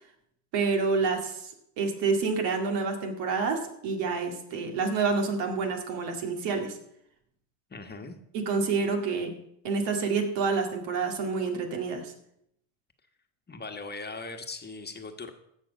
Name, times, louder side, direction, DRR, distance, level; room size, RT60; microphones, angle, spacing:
voice 1, 0.5-6.8 8.3-9.4 9.6-12.1, right 4 dB, 70° right, 3 dB, 2.2 m, -28 dB
voice 2, 7.7-8.2 9.1-9.2 13.5-15.3, left 3 dB, 20° left, 5 dB, 1.2 m, -39 dB
16.0 x 6.3 x 5.3 m, 0.75 s
supercardioid pair, 95°, 43 cm